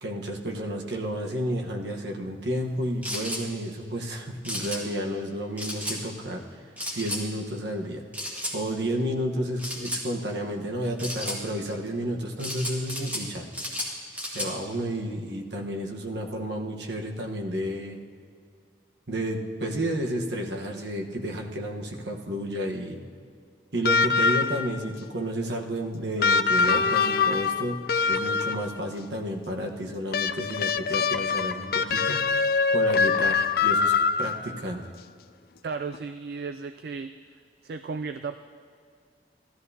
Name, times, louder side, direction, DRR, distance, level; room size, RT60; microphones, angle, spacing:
voice 1, 0.0-6.4 6.9-8.0 8.5-13.5 14.3-18.0 19.1-23.0 23.7-27.8 28.1-32.2 32.7-33.9 34.2-34.9, equal, 75° right, 1 dB, 1.2 m, -31 dB
sound 1, 3.0-3.4 4.4-4.8 5.6-6.0 6.8-7.2 8.1-8.5 9.6-10.0 11.0-11.4 12.4-13.2 13.5-14.5, left 1 dB, 10° right, 1.8 m, -33 dB
sound 2, 23.8-24.8 26.2-28.8 30.1-34.6 35.9-36.0, left 5 dB, 55° left, 0.3 m, -24 dB
voice 2, 35.6-37.1 37.6-38.4, right 4 dB, 60° right, 9 dB, 0.3 m, -34 dB
16.5 x 13.0 x 2.8 m, 2.2 s
head